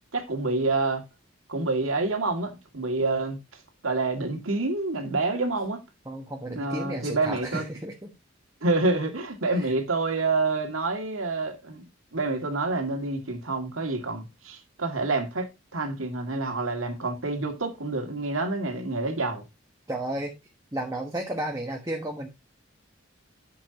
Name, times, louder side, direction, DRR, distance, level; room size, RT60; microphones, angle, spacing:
voice 1, 0.1-1.0 1.5-3.4 3.8-5.8 6.5-7.6 8.6-15.5 15.7-19.4, right 3 dB, 85° right, 2.1 m, -27 dB
voice 2, 6.0-8.1 9.5-9.7 19.9-20.3 20.7-22.3, right 1 dB, 15° right, 1.2 m, -33 dB
11.0 x 6.9 x 2.8 m
head